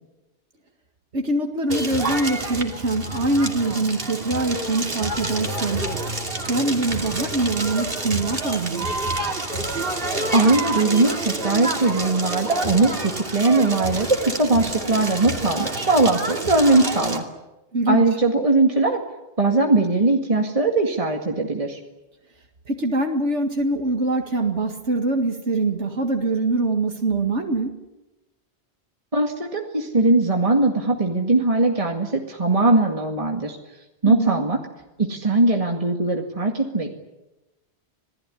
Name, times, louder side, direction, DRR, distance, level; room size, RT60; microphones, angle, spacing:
voice 1, 1.1-5.9 6.5-8.9 17.7-18.0 22.7-27.8 34.1-34.4, right 2 dB, 85° right, 3 dB, 2.3 m, -23 dB
Crackle, 1.7-17.2, right 2 dB, 55° right, 3.0 m, -28 dB
voice 2, 10.3-17.2 17.9-19.0 19.4-21.8 29.1-33.6 34.0-34.6 35.0-36.9, right 2 dB, 30° right, 2 dB, 2.1 m, -20 dB
27.0 x 18.0 x 10.0 m, 1.0 s
omnidirectional pair, 1.1 m